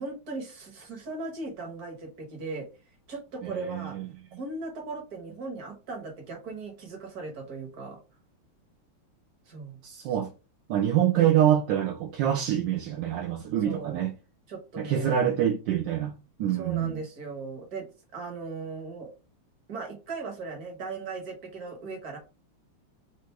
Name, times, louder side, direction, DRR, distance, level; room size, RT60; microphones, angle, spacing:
voice 1, 0.0-2.7 3.1-4.0 4.4-8.0 9.5-9.8 13.6-14.1 14.5-15.1 16.5-17.9 18.1-19.1 19.7-22.2, right 3 dB, 50° right, 1.6 m, -38 dB
voice 2, 3.4-4.0 9.8-10.3 10.7-14.1 14.8-16.1 16.4-17.0, right 10 dB, 75° right, 1.1 m, -25 dB
4.4 x 2.5 x 4.5 m
omnidirectional pair, 2.4 m